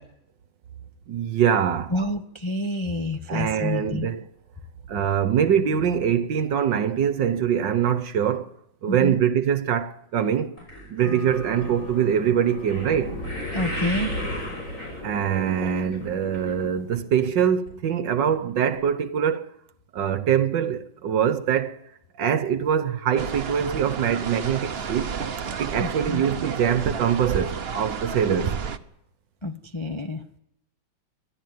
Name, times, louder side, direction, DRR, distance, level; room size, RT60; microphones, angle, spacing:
voice 1, 1.1-1.9 3.3-4.3 4.9-8.5 8.8-10.5 10.9-13.2 15.0-19.6 19.9-21.8 22.1-25.2 25.6-28.6, right 8 dB, 70° right, 1.6 m, -23 dB
voice 2, 1.9-4.1 8.9-9.2 13.5-14.1 25.8-26.2 29.4-30.2, left 1 dB, 20° left, 0.8 m, -28 dB
sound 1, 10.6-17.0 17.2-17.7 18.3-18.4 18.7-18.8, equal, 40° left, 6.9 m, -34 dB
sound 2, 11.0-17.0, left 1 dB, 80° left, 4.3 m, -47 dB
sound 3, 23.2-28.8, right 6 dB, 45° right, 0.9 m, -31 dB
23.0 x 13.5 x 9.5 m
omnidirectional pair, 2.1 m